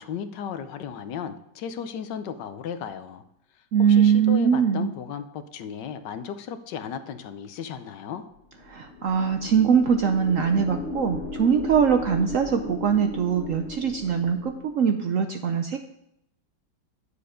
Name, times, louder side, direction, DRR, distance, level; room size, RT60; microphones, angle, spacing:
voice 1, 0.0-3.2 3.9-8.2, left 7 dB, 75° left, 10 dB, 1.4 m, -35 dB
voice 2, 3.7-4.9 8.7-15.8, right 7 dB, 65° right, 6 dB, 0.8 m, -22 dB
sound 1, 8.6-14.8, left 2 dB, 45° left, 1.3 m, -36 dB
9.8 x 6.9 x 4.9 m, 0.82 s
omnidirectional pair, 2.0 m